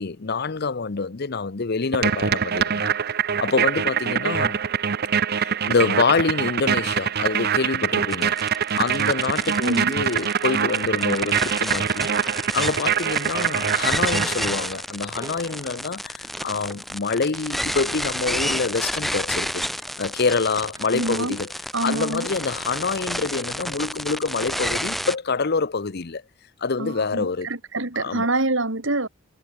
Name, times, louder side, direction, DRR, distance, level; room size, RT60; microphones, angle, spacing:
voice 1, 0.0-2.9 3.4-4.6 5.4-8.4 8.7-12.1 12.5-19.6 20.0-21.5 21.8-26.2 26.6-27.5 28.0-28.3, left 4 dB, 50° left, 0.8 m, -26 dB
sound 1, 1.9-14.7, right 7 dB, 50° right, 0.7 m, -24 dB
sound 2, 8.1-25.2, equal, ahead, 1.3 m, -30 dB
voice 2, 9.6-10.0 20.9-21.4 21.7-22.3 26.8-29.1, right 2 dB, 65° right, 3.3 m, -26 dB
sound 3, 15.2-20.3 20.7-21.8 22.5-22.7, right 1 dB, 15° right, 6.2 m, -49 dB
head